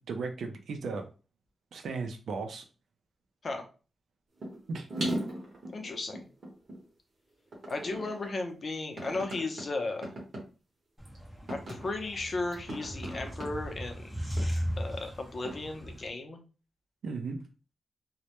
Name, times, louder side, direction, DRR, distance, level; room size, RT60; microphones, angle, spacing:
voice 1, 0.1-1.0 1.7-2.6 4.7-5.1 17.0-17.4, right 4 dB, 80° right, 5 dB, 0.4 m, -36 dB
sound 1, 4.4-4.6 4.9-6.8 7.5-8.3 9.0-9.6 10.0-10.4 11.1-11.2 11.5-11.9 12.5-13.5 14.4-14.5 15.5-15.6, right 1 dB, 60° right, 0.9 m, -37 dB
voice 2, 5.7-6.3 7.7-10.1 11.5-14.1 14.8-16.4, left 2 dB, 45° left, 4 dB, 0.5 m, -35 dB
sound 2, 11.0-16.1, equal, 10° right, 0.7 m, -37 dB
2.1 x 2.1 x 2.9 m, 0.34 s
cardioid pair, 90°, 0 cm